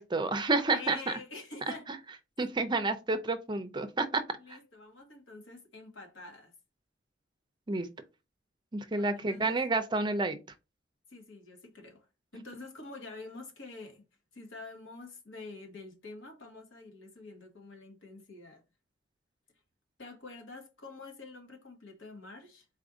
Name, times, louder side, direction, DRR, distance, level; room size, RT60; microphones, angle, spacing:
voice 1, 0.0-1.2 2.4-4.2 7.7-7.9 8.7-10.4, right 3 dB, 25° right, 0.5 m, -29 dB
voice 2, 0.7-1.9 4.4-6.5 9.0-9.6 11.1-12.1 12.3-14.0 14.3-18.6 20.0-22.7, left 3 dB, 85° left, 1.5 m, -47 dB
4.2 x 2.6 x 4.9 m
head